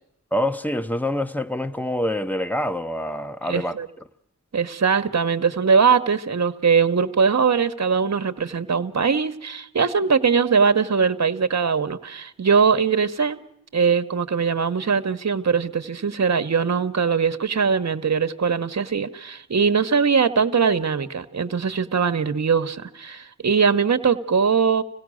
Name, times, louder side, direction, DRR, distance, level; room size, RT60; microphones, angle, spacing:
voice 1, 0.3-3.7, left 1 dB, 5° left, 0.9 m, -26 dB
voice 2, 3.5-3.9 4.5-13.4 13.7-24.8, right 5 dB, 60° right, 1.1 m, -21 dB
26.5 x 17.0 x 6.3 m
wide cardioid pair, 75°, 30 cm